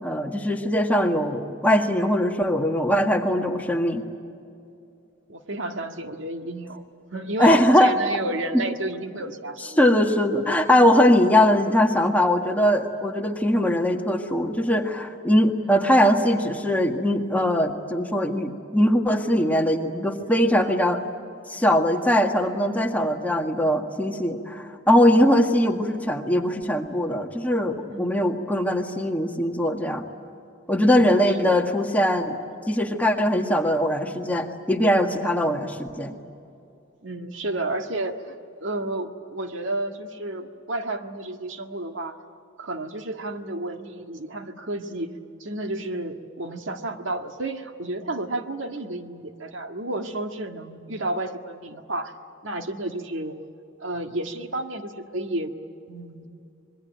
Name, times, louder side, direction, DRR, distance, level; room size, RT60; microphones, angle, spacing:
voice 1, 0.0-4.0 7.4-7.9 9.8-21.0 21.5-30.0 30.7-32.4 32.7-36.1, equal, 10° left, 3 dB, 1.7 m, -21 dB
voice 2, 5.3-6.8 7.1-9.8 15.6-15.8 20.2-20.5 25.1-25.3 27.8-28.2 30.9-31.6 37.0-42.2 42.6-52.1 52.4-53.4 53.8-55.6 55.9-56.3, right 2 dB, 80° right, 6 dB, 1.8 m, -31 dB
26.0 x 22.0 x 9.1 m, 2.6 s
head